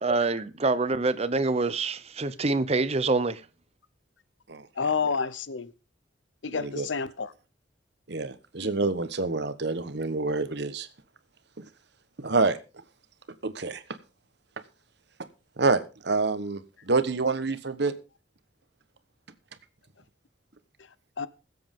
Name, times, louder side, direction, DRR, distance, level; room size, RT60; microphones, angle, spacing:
voice 1, 0.0-3.4, right 3 dB, 35° right, 0.7 m, -26 dB
voice 2, 4.8-5.7 6.4-7.3 8.6-8.7 21.2-21.3, left 5 dB, 80° left, 0.8 m, -29 dB
voice 3, 6.5-6.9 8.1-10.9 11.6-11.7 12.2-12.6 13.4-13.8 15.6-17.9, right 3 dB, 60° right, 1.1 m, -27 dB
21.0 x 7.9 x 3.6 m
head